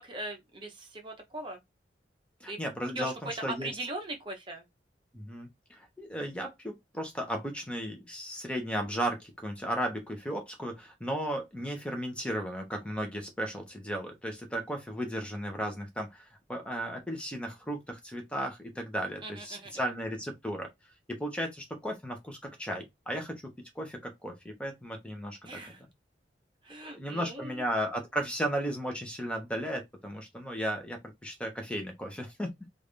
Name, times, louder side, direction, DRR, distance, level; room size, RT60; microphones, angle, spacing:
voice 1, 0.0-1.6 2.5-2.6 3.0-3.3 3.6-4.6 19.2-19.7 25.4-25.8 26.6-27.5, right 2 dB, 30° right, 0.8 m, -40 dB
voice 2, 2.4-3.7 5.1-20.7 21.1-25.6 26.8-32.5, equal, 5° left, 0.8 m, -35 dB
3.4 x 2.5 x 3.3 m
head